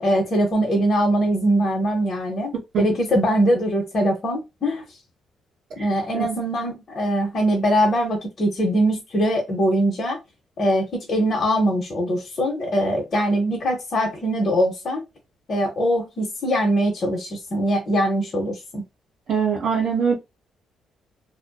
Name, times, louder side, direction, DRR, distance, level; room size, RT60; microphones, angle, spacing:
voice 1, 0.0-4.8 5.8-10.2 10.6-15.0 15.5-18.8, equal, 50° left, 0.8 m, -22 dB
voice 2, 19.3-20.1, right 6 dB, 70° right, 0.9 m, -22 dB
2.6 x 2.1 x 2.2 m
cardioid pair, 90°, 0 cm